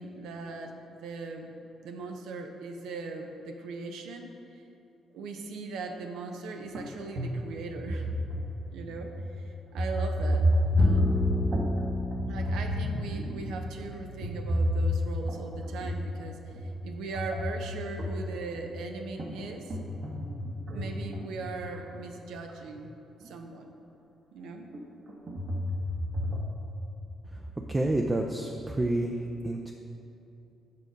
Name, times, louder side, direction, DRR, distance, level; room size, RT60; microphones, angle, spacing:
voice 1, 0.0-1.5 1.8-4.6 5.1-8.1 8.7-10.5 10.8-11.1 12.3-19.8 20.7-22.9 23.2-23.7 24.3-24.7, right 3 dB, 85° right, 4 dB, 0.6 m, -39 dB
sound 1, 6.7-6.9 7.2-8.7 9.2-9.3 9.7-11.8 12.1-13.6 14.2-15.3 15.8-16.2 16.5-18.6 19.2-21.8 22.6-22.7 23.2-23.3 24.7-26.4, equal, 50° right, 1.0 m, -30 dB
Bowed string instrument, 10.8-17.2, left 2 dB, 25° left, 0.6 m, -33 dB
voice 2, 27.7-29.1 29.4-29.7, right 1 dB, 20° right, 2 dB, 0.4 m, -28 dB
6.8 x 4.7 x 5.2 m, 2.8 s
cardioid pair, 90°, 0 cm